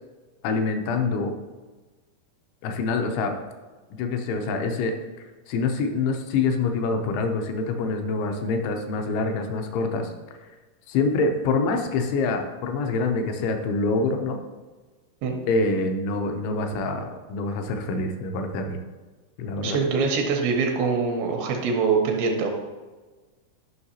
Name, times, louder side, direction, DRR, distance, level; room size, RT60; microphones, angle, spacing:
voice 1, 0.4-1.3 2.6-3.4 4.0-4.9 5.5-10.1 10.9-14.4 15.5-18.8 19.4-19.8, left 3 dB, 80° left, 5 dB, 2.9 m, -25 dB
voice 2, 19.6-22.5, right 5 dB, 80° right, 2 dB, 2.9 m, -24 dB
11.0 x 5.6 x 2.8 m, 1.3 s
omnidirectional pair, 5.6 m